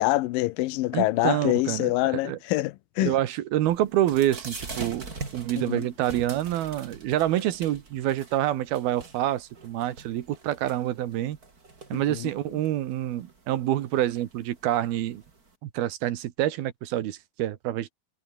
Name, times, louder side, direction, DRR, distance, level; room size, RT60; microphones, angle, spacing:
voice 1, 0.0-3.1 5.6-5.9 11.9-12.3, left 18 dB, 75° left, 2.2 m, -26 dB
voice 2, 0.9-1.9 2.2-2.4 3.0-5.1 5.3-11.4 11.9-15.2 15.6-17.9, right 13 dB, 70° right, 3.1 m, -27 dB
sound 1, 3.6-15.5, right 3 dB, 25° right, 3.5 m, -44 dB
omnidirectional pair, 4.7 m